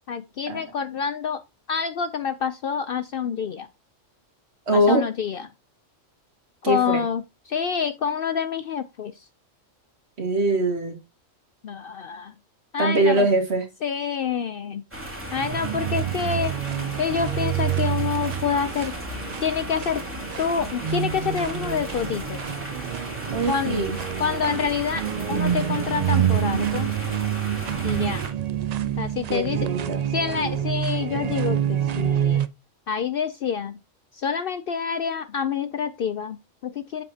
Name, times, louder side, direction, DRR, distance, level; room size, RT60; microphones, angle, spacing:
voice 1, 0.1-1.4 1.7-3.7 4.7-5.5 6.7-9.3 11.6-12.3 12.7-13.3 13.8-14.8 15.3-16.5 17.0-18.9 19.4-20.0 20.4-22.4 23.5-23.8 24.2-26.9 27.8-28.2 29.0-29.7 30.1-32.5 32.9-33.8 34.1-37.0, left 7 dB, 60° left, 0.6 m, -27 dB
voice 2, 4.7-5.0 6.6-7.0 10.2-11.0 12.8-13.6 23.3-24.0 29.3-30.0, right 1 dB, 55° right, 2.0 m, -22 dB
sound 1, 14.9-28.3, equal, 10° right, 2.6 m, -36 dB
sound 2, 15.3-32.5, right 10 dB, 75° right, 0.3 m, -27 dB
8.0 x 7.0 x 2.8 m
omnidirectional pair, 1.3 m